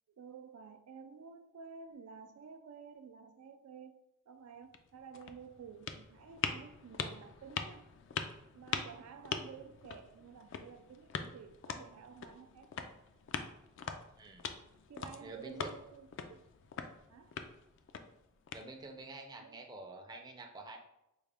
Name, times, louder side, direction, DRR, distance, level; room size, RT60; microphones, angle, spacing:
voice 1, 0.1-7.9 8.5-12.7 14.9-16.4 17.1-17.4 19.4-19.7, right 6 dB, 85° right, 0.3 m, -52 dB
sound 1, 4.6-19.1, left 6 dB, 60° left, 0.3 m, -43 dB
voice 2, 14.2-14.5 15.2-15.7 18.5-20.8, right 3 dB, 20° right, 0.4 m, -48 dB
4.6 x 2.1 x 3.3 m
head